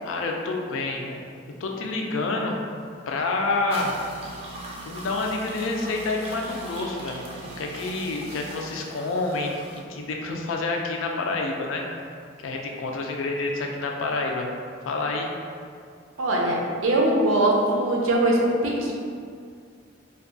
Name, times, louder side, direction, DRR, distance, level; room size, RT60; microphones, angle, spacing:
voice 1, 0.0-1.2 1.6-2.6 3.1-4.0 4.8-11.9 12.4-14.5 14.8-15.3, left 3 dB, 85° left, 1 dB, 0.4 m, -28 dB
sound 1, 3.5-9.8, right 2 dB, 30° right, 0.4 m, -40 dB
voice 2, 16.2-18.9, right 1 dB, 90° right, -2 dB, 0.5 m, -22 dB
2.6 x 2.3 x 2.5 m, 2.3 s
head